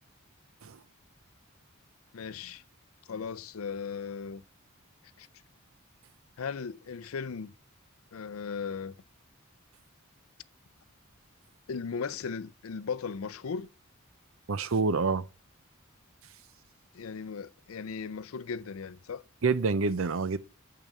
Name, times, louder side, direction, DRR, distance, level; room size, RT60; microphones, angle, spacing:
voice 1, 2.1-2.6 3.1-4.4 5.2-5.3 6.4-7.5 8.1-8.9 11.7-13.7 16.9-19.2, left 5 dB, 75° left, 0.5 m, -37 dB
voice 2, 14.5-15.2 19.4-20.4, right 4 dB, 70° right, 0.6 m, -27 dB
8.9 x 6.7 x 6.0 m
head